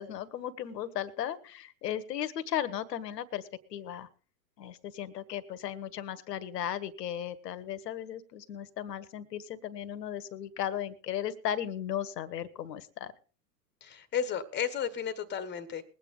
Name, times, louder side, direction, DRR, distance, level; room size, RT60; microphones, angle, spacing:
voice 1, 0.0-4.1 4.6-13.1, left 10 dB, 70° left, 14 dB, 1.5 m, -36 dB
voice 2, 13.8-15.8, left 8 dB, 20° left, 11 dB, 1.5 m, -33 dB
21.0 x 8.9 x 3.9 m, 0.38 s
hypercardioid pair, 110°, 50 cm